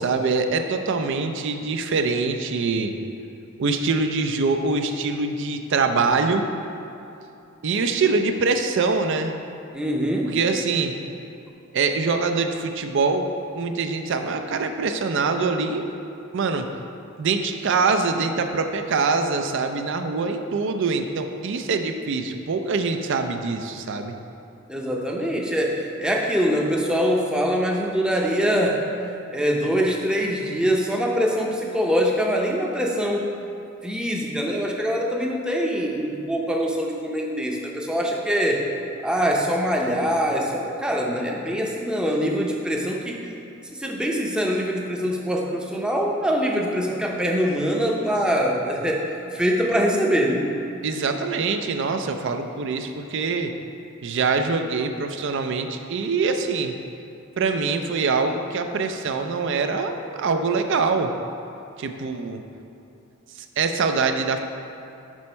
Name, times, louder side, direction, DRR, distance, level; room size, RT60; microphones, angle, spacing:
voice 1, 0.0-2.9 3.6-6.5 7.6-9.4 10.3-10.9 11.7-15.9 16.3-16.7 17.2-24.1 50.8-53.5 54.0-56.7 57.4-61.1 61.8-62.4 63.6-64.4, right 4 dB, 60° right, 6 dB, 0.4 m, -24 dB
voice 2, 9.7-10.3 24.7-28.8 29.3-33.3 33.8-38.7 39.0-43.2 43.8-50.5, equal, 5° right, -1 dB, 0.6 m, -23 dB
6.2 x 4.2 x 5.4 m, 2.8 s
head